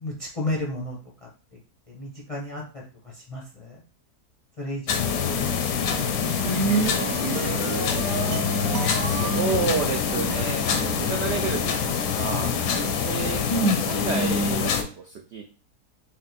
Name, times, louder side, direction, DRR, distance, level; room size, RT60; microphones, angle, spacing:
voice 1, 0.0-1.0 1.9-2.6 3.3-3.7 4.6-5.6 5.9-6.7 7.4-7.6 13.5-14.0, equal, 40° left, -2 dB, 0.4 m, -31 dB
sound 1, 4.9-14.8, left 6 dB, 90° left, 1.2 m, -25 dB
sound 2, 6.1-10.4, right 4 dB, 55° right, 0.7 m, -29 dB
voice 2, 8.7-12.5 12.8-13.4 13.8-15.4, right 5 dB, 85° right, 3 dB, 0.5 m, -31 dB
4.3 x 2.2 x 4.0 m, 0.38 s
omnidirectional pair, 1.7 m